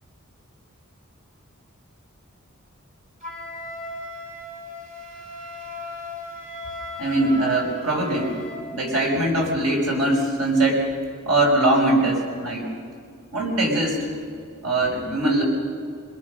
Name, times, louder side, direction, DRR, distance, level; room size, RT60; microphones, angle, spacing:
Wind instrument woodwind instrument, 3.2-8.7, left 1 dB, 35° right, 7.4 m, -36 dB
voice 1, 7.0-8.3 8.7-10.9 11.3-12.7 13.3-14.1 14.6-15.4, right 1 dB, 85° right, 0 dB, 5.5 m, -21 dB
25.5 x 22.5 x 6.5 m, 2.2 s
head